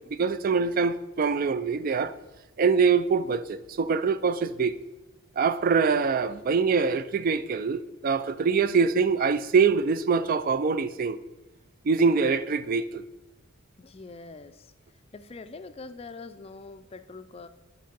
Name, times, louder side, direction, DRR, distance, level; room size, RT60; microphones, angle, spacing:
voice 1, 0.2-2.1 2.6-4.8 5.4-11.2 11.9-13.0, right 5 dB, 45° right, 0.3 m, -24 dB
voice 2, 13.8-14.7 15.1-17.5, left 3 dB, 30° left, 0.4 m, -43 dB
7.6 x 4.8 x 5.3 m
head